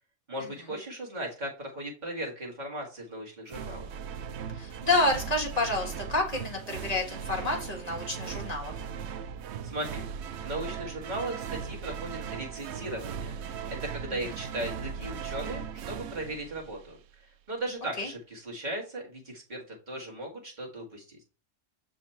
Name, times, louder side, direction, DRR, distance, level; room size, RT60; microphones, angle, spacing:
voice 1, 0.3-3.9 9.6-10.0 10.4-13.4 13.7-21.2, right 1 dB, 35° right, -1 dB, 2.0 m, -37 dB
sound 1, 3.5-17.1, right 7 dB, 70° right, 0.8 m, -38 dB
voice 2, 4.6-8.7 18.0-18.1, left 2 dB, 35° left, 1 dB, 1.6 m, -29 dB
6.3 x 3.8 x 4.4 m, 0.35 s
omnidirectional pair, 1.2 m